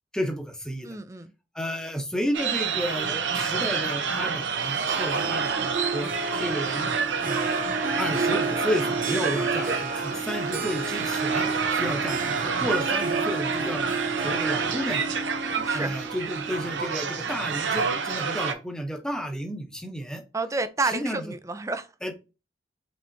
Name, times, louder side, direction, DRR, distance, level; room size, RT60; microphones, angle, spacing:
voice 1, 0.1-1.0 1.5-6.1 6.4-6.9 7.2-7.6 8.0-13.9 14.2-15.1 15.7-20.2 20.8-21.3 22.0-22.1, equal, 5° left, 0.8 m, -32 dB
voice 2, 0.8-1.3 15.4-16.0 20.3-21.9, right 3 dB, 15° right, 0.4 m, -30 dB
sound 1, 2.3-18.5, right 5 dB, 85° right, 0.7 m, -28 dB
Harp, 4.7-16.9, right 3 dB, 50° right, 0.8 m, -31 dB
5.2 x 3.4 x 2.7 m
head